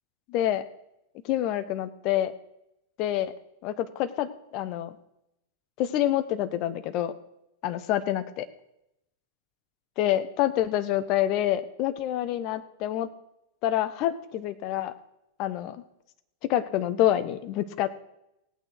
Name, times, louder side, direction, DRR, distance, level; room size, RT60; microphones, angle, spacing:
voice 1, 0.3-0.6 1.2-2.3 3.0-3.3 3.6-4.9 5.8-7.1 7.6-8.5 10.0-13.1 13.6-14.9 15.4-15.8 16.5-17.9, left 12 dB, 40° left, 11 dB, 0.9 m, -27 dB
17.5 x 8.9 x 4.6 m, 0.83 s
figure-of-eight pair, 90°, 0 cm